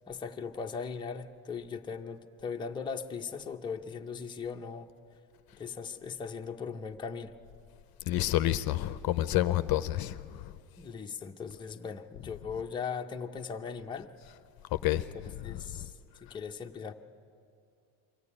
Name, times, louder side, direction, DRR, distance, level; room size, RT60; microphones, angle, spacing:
voice 1, 0.1-4.9 5.5-7.4 10.8-14.1 14.9-15.0 15.4-15.9 16.2-16.9, left 5 dB, 10° left, 0.7 m, -39 dB
voice 2, 8.0-10.6 14.7-15.9, left 14 dB, 50° left, 0.6 m, -30 dB
23.5 x 15.0 x 9.8 m
cardioid pair, 130°, 48 cm